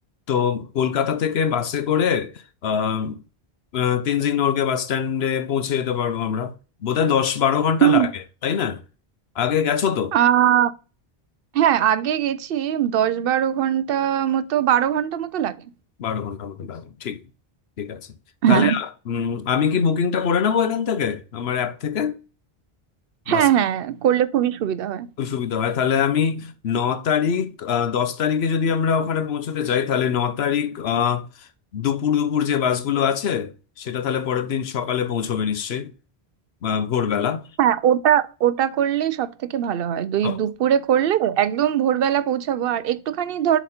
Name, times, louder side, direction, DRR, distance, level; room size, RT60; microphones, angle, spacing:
voice 1, 0.3-2.3 2.6-3.2 3.7-6.6 6.8-8.1 8.4-8.8 9.4-10.2 16.0-17.2 17.8-18.0 18.5-22.2 23.3-23.5 25.2-35.9 36.6-37.4 40.2-40.4, left 7 dB, 80° left, 1.0 m, -23 dB
voice 2, 10.1-10.7 11.5-15.7 18.4-18.8 23.3-25.1 37.6-43.6, right 10 dB, 70° right, 0.7 m, -20 dB
7.1 x 4.0 x 4.3 m
omnidirectional pair, 1.0 m